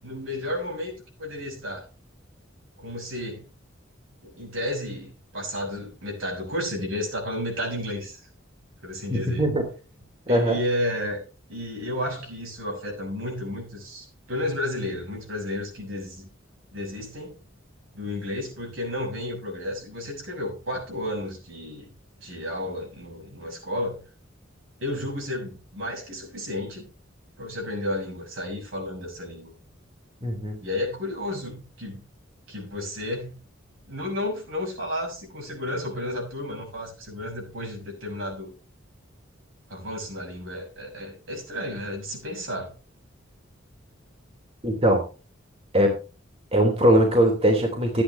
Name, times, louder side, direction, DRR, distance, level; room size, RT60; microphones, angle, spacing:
voice 1, 0.0-1.8 2.8-3.4 4.2-8.2 8.8-9.5 10.3-11.2 11.5-16.3 16.7-17.4 17.9-21.9 22.2-24.0 24.8-26.9 27.4-29.5 30.6-32.0 32.5-33.4 33.9-38.5 39.7-42.7, left 1 dB, 75° right, 0 dB, 6.7 m, -32 dB
voice 2, 9.1-9.6 10.3-10.6 30.2-30.6 44.6-45.0 45.7-45.9 46.5-48.0, equal, 30° right, 1 dB, 3.1 m, -20 dB
13.5 x 10.0 x 3.3 m, 0.34 s
head